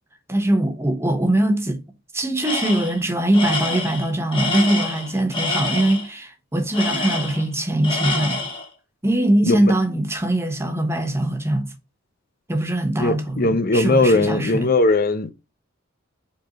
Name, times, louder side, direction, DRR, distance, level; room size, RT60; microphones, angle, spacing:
voice 1, 0.3-1.8 2.1-8.4 9.0-11.7 12.5-14.7, right 1 dB, 15° right, 1.1 m, -22 dB
Tools, 2.4-3.0 3.3-6.1 6.7-7.5 7.8-8.7, left 2 dB, 25° left, 1.8 m, -26 dB
voice 2, 13.0-15.3, left 2 dB, 45° left, 0.7 m, -19 dB
5.3 x 4.5 x 5.2 m
head